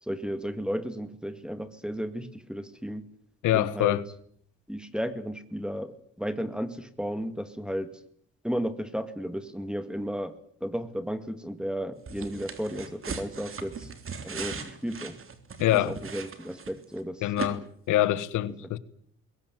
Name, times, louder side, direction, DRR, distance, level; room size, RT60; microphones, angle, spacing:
voice 1, 0.0-3.1 3.5-4.0 4.7-8.0 8.4-13.9 14.2-15.2 15.7-17.3 18.6-18.7, equal, 5° right, 2.0 m, -34 dB
voice 2, 3.4-4.0 15.6-16.0 17.2-18.8, left 14 dB, 90° left, 1.5 m, -25 dB
sound 1, 12.1-17.0 17.4-17.5, right 5 dB, 45° right, 3.4 m, -38 dB
21.5 x 18.5 x 9.2 m
cardioid pair, 90°, 30 cm